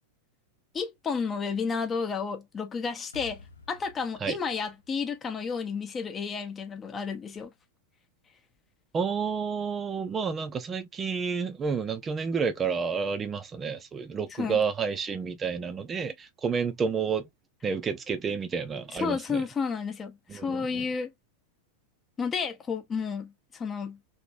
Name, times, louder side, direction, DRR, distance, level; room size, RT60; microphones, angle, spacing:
voice 1, 0.7-7.5 14.4-14.6 19.0-21.1 22.2-24.0, left 5 dB, 20° left, 0.9 m, -31 dB
sound 1, 3.1-6.2, left 5 dB, 80° left, 0.9 m, -53 dB
voice 2, 8.9-17.3 17.6-19.4 20.3-20.9, right 6 dB, 20° right, 0.7 m, -30 dB
3.0 x 3.0 x 2.5 m
figure-of-eight pair, 90°, 0 cm